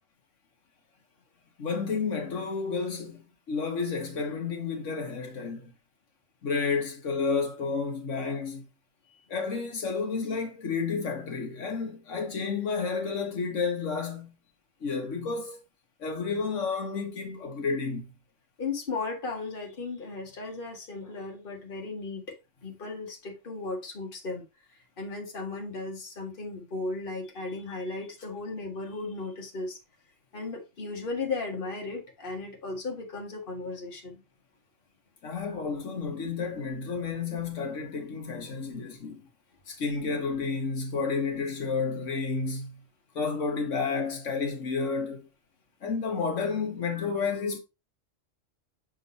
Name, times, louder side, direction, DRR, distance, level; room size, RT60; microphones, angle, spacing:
voice 1, 1.6-5.7 6.4-8.7 9.3-14.3 14.8-15.6 16.0-18.0 35.2-39.2 39.7-42.8 43.1-45.2 45.8-47.6, left 5 dB, 85° left, 1.6 m, -31 dB
voice 2, 18.6-24.4 25.0-29.8 30.3-34.2, left 3 dB, 45° left, 1.6 m, -36 dB
6.6 x 3.7 x 4.0 m
omnidirectional pair, 1.3 m